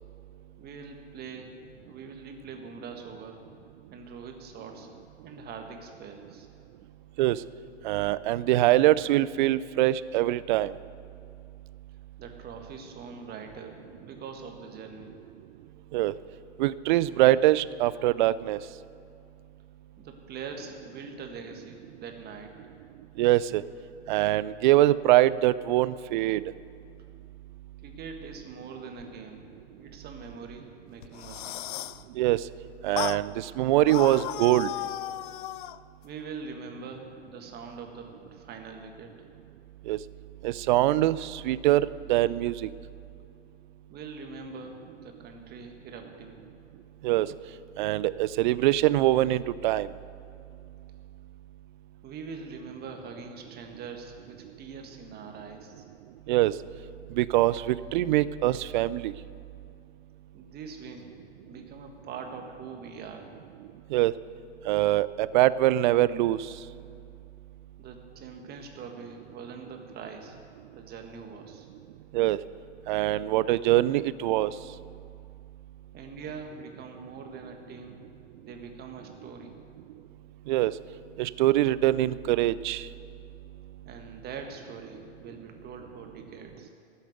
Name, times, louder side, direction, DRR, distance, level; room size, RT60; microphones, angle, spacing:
voice 1, 0.6-1.6 1.8-3.4 3.9-4.9 5.2-6.5 12.2-15.1 20.0-22.5 27.8-29.4 29.7-31.7 36.0-39.1 43.9-46.4 52.0-55.8 60.3-61.1 61.5-63.3 67.8-70.4 70.7-71.7 75.9-78.0 78.4-79.5 83.8-86.7, right 5 dB, 25° right, 4 dB, 1.6 m, -43 dB
voice 2, 7.8-10.7 15.9-16.1 16.6-18.6 23.2-23.6 24.1-26.4 32.2-32.5 32.8-34.7 39.9-40.0 40.4-42.7 47.0-47.3 47.8-49.9 56.3-56.5 57.1-59.1 63.9-64.1 64.7-66.5 72.1-72.4 72.9-74.5 80.5-80.7 81.2-82.9, right 15 dB, 45° right, 18 dB, 0.4 m, -23 dB
sound 1, 31.0-32.0 33.0-33.2 33.9-35.8, left 15 dB, 50° left, 0.4 m, -35 dB
13.5 x 7.3 x 9.3 m, 2.6 s
hypercardioid pair, 110°, 35 cm